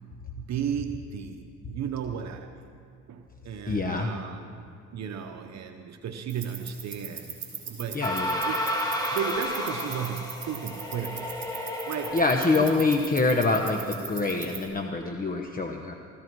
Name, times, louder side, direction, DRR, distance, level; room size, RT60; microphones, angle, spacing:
voice 1, 0.4-2.6 3.1-7.4 7.7-8.1 8.4-8.6 9.1-11.3 11.8-12.2 12.4-12.7, right 8 dB, 60° right, 5 dB, 0.9 m, -34 dB
voice 2, 3.7-4.1 7.9-8.3 12.1-15.9, left 3 dB, 30° left, 3 dB, 1.0 m, -25 dB
sound 1, 6.3-14.7, right 6 dB, 40° right, 3.6 m, -41 dB
sound 2, 8.0-13.1, equal, 15° left, 2.2 m, -32 dB
16.5 x 15.0 x 4.7 m, 2.4 s
cardioid pair, 90°, 30 cm